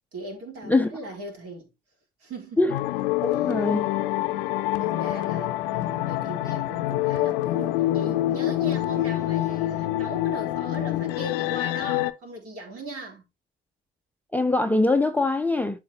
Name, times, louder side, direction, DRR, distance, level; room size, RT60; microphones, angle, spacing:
voice 1, 0.1-1.7 2.2-2.8 3.2-3.4 4.8-13.3, right 1 dB, 50° right, 3.8 m, -38 dB
sound 1, 2.7-12.1, left 15 dB, 65° left, 0.7 m, -26 dB
voice 2, 3.2-3.9 14.3-15.8, left 2 dB, 5° left, 0.7 m, -22 dB
12.0 x 4.0 x 2.9 m
figure-of-eight pair, 60°, 29 cm